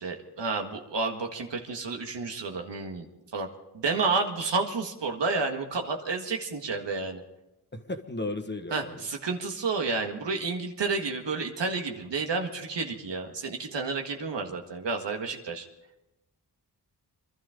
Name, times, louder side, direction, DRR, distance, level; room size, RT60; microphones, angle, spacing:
voice 1, 0.0-3.1 3.3-3.5 3.7-7.2 8.7-15.7, right 4 dB, 90° right, 3 dB, 1.9 m, -30 dB
voice 2, 7.7-9.0, left 2 dB, 25° left, 7 dB, 1.3 m, -35 dB
26.0 x 12.5 x 3.8 m, 0.94 s
wide cardioid pair, 90°, 42 cm